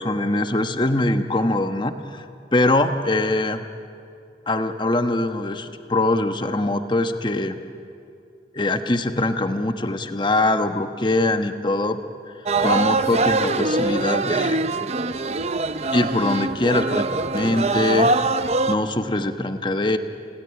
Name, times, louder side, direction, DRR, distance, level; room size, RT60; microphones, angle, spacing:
voice 1, 0.0-2.2 2.5-3.6 4.5-7.6 8.5-12.0 12.6-14.6 15.9-17.0 17.3-18.4 18.7-20.0, left 2 dB, 25° left, 8 dB, 1.1 m, -22 dB
sound 1, 12.5-18.7, right 3 dB, 35° right, 0.7 m, -23 dB
29.5 x 17.0 x 10.0 m, 2.5 s
head